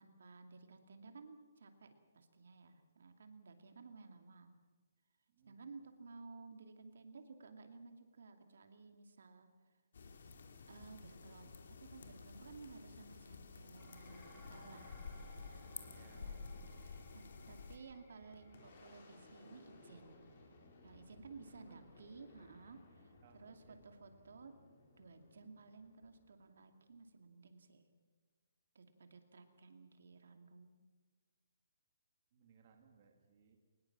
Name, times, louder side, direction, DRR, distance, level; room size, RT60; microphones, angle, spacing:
voice 1, 0.0-4.5 5.5-9.5 10.7-15.2 15.5-16.4 16.7-20.4 20.8-23.1 23.4-24.6 25.0-27.9 28.7-30.8, right 4 dB, 60° right, 6 dB, 2.5 m, -56 dB
voice 2, 5.3-5.6 15.9-16.7 21.5-21.8 23.2-23.8 32.3-33.6, right 6 dB, 30° right, 3 dB, 2.3 m, -66 dB
sound 1, 9.9-17.8, left 4 dB, 55° left, 2.5 m, -52 dB
Dishes pots and pans, 13.8-22.6, left 1 dB, 10° left, 5.0 m, -62 dB
Boom, 18.1-27.1, left 2 dB, 35° left, 4.0 m, -63 dB
22.5 x 20.0 x 7.4 m, 1.4 s
hypercardioid pair, 180°, 0 cm